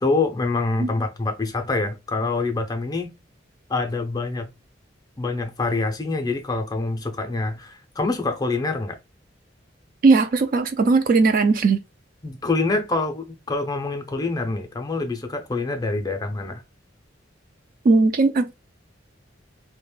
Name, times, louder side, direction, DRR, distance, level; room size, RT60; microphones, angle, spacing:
voice 1, 0.0-3.1 3.7-4.5 5.2-9.0 12.2-16.6, left 3 dB, 20° left, 0.5 m, -25 dB
voice 2, 10.0-11.8 17.8-18.5, right 3 dB, 45° right, 0.3 m, -18 dB
2.4 x 2.1 x 3.1 m
head